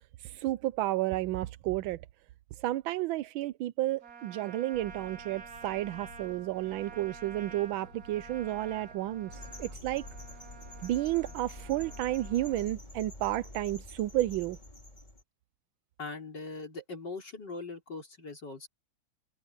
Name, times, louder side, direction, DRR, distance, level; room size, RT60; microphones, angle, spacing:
voice 1, 0.2-2.0 2.6-10.1 10.8-14.6, right 15 dB, 85° right, 1.4 m, -32 dB
Trumpet, 4.0-12.7, right 6 dB, 50° right, 2.4 m, -50 dB
sound 1, 4.7-12.8, left 3 dB, 80° left, 5.0 m, -53 dB
sound 2, 9.3-15.2, left 1 dB, 20° left, 4.0 m, -47 dB
voice 2, 16.0-18.7, left 3 dB, 60° left, 4.6 m, -41 dB
omnidirectional pair, 2.1 m